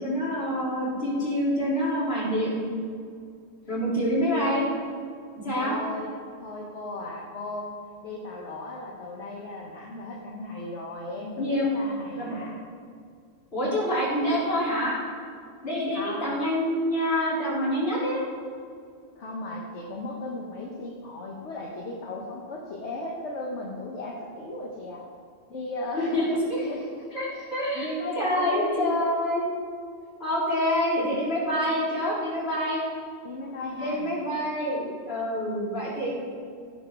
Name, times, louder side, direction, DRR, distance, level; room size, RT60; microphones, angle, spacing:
voice 1, 0.0-2.6 3.7-4.6 5.4-5.8 11.4-11.7 12.2-12.4 13.5-15.0 15.6-18.2 26.0-26.6 27.1-29.5 30.2-32.8 33.8-36.1, equal, 60° left, -8 dB, 3.9 m, -26 dB
voice 2, 5.5-6.1 6.4-7.7 8.0-12.6 15.9-16.3 19.1-25.0 25.5-27.0 27.3-27.4 27.7-28.9 33.2-34.1, left 1 dB, 80° left, -3 dB, 1.5 m, -36 dB
16.0 x 5.4 x 6.0 m, 2.3 s
omnidirectional pair, 1.1 m